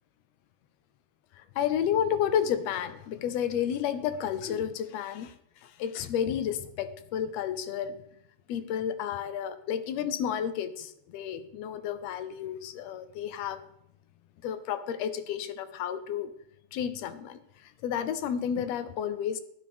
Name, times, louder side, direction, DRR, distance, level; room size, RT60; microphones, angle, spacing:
voice 1, 1.6-5.3 5.6-8.0 8.5-13.6 14.4-16.3 16.7-17.4 17.8-19.4, left 9 dB, 75° left, 11 dB, 1.6 m, -31 dB
12.0 x 11.5 x 3.5 m, 0.79 s
omnidirectional pair, 3.4 m